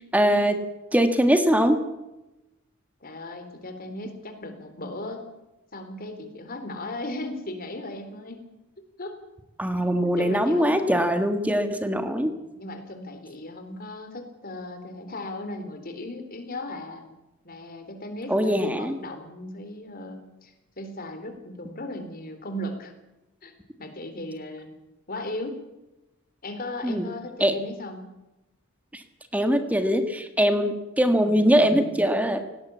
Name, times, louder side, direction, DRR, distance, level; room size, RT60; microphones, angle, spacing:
voice 1, 0.1-0.6 0.9-1.8 9.6-12.4 18.3-19.0 26.8-27.1 27.4-27.6 28.9-29.0 29.3-32.4, equal, 5° right, 8 dB, 1.7 m, -22 dB
voice 2, 3.0-5.2 5.7-8.4 9.0-9.2 10.0-10.8 12.6-17.1 17.4-22.9 23.4-23.5 23.8-24.7 25.1-25.6 26.4-28.1, left 1 dB, 45° left, 7 dB, 3.7 m, -37 dB
18.0 x 17.5 x 8.5 m, 0.97 s
head